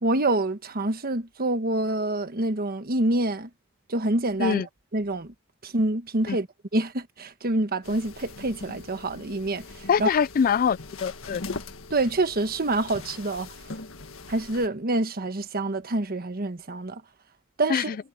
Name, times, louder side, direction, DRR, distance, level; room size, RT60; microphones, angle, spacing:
voice 1, 0.0-3.5 3.9-5.3 5.6-6.5 6.7-10.1 11.9-13.5 14.3-17.0 17.6-17.9, right 2 dB, 45° right, 1.3 m, -27 dB
sound 1, 7.8-14.7, left 3 dB, 70° left, 1.7 m, -41 dB
voice 2, 9.9-11.4 17.7-18.0, left 7 dB, 45° left, 0.3 m, -24 dB
head